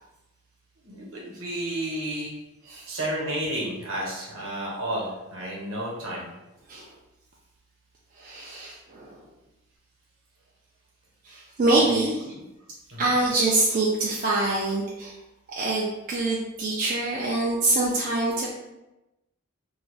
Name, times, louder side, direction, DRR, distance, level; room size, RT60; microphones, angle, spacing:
voice 1, 0.8-2.3 2.9-6.3 11.8-12.4 12.9-13.1, right 1 dB, 65° right, -3 dB, 0.9 m, -32 dB
voice 2, 8.2-9.2 11.2-12.3 13.0-15.1 15.5-18.5, right 2 dB, 40° right, -5 dB, 0.3 m, -25 dB
2.6 x 2.2 x 3.1 m, 0.98 s
head